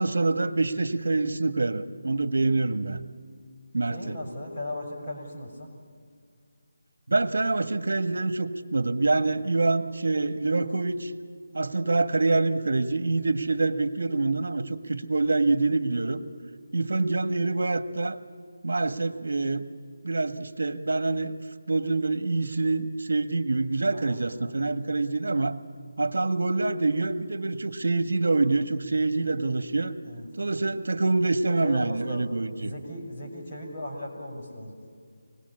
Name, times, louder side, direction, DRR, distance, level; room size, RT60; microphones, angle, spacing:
voice 1, 0.0-3.0 3.7-4.2 7.1-11.1 11.5-16.2 16.7-18.2 18.6-19.6 20.0-21.3 21.7-25.5 26.0-29.9 30.4-32.7, right 3 dB, 75° right, 9 dB, 1.5 m, -26 dB
voice 2, 3.9-5.7 23.9-24.2 30.0-30.3 31.6-32.3 32.6-34.7, left 1 dB, 25° left, -3 dB, 6.4 m, -37 dB
25.5 x 20.5 x 8.6 m, 2.1 s
figure-of-eight pair, 175°, 0 cm